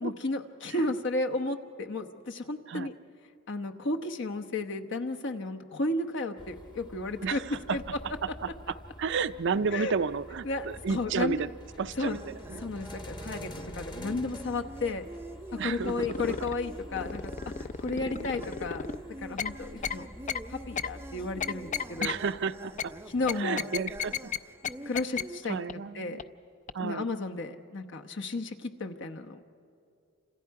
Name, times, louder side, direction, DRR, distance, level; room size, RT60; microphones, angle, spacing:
voice 1, 0.0-2.9 3.5-7.4 7.7-7.8 9.7-9.9 10.4-11.4 12.0-12.2 12.6-15.1 15.5-17.3 17.6-20.1 20.5-22.1 23.1-23.7 24.8-25.6 25.9-26.2 26.8-29.5, left 2 dB, 65° left, 5 dB, 1.0 m, -33 dB
sound 1, 6.4-23.4, equal, 25° left, 1.0 m, -48 dB
voice 2, 7.2-7.8 8.4-11.5 11.8-12.7 15.6-15.9 16.3-16.4 17.9-18.3 22.0-22.9 23.4-24.2 25.5-26.2 26.7-27.1, right 5 dB, 60° right, 13 dB, 0.5 m, -32 dB
sound 2, 12.0-25.4, right 1 dB, 10° right, 0.5 m, -46 dB
sound 3, 15.8-16.5 17.0-19.0 19.4-19.5 19.8-20.0 20.3-20.4 20.8-20.9 21.4-22.1 22.8-22.9 23.3-24.4 24.6-24.7 24.9-25.2 25.7-25.8 26.2-26.3 26.7-26.8, left 7 dB, 40° left, 0.5 m, -33 dB
29.5 x 27.0 x 4.8 m, 2.5 s
head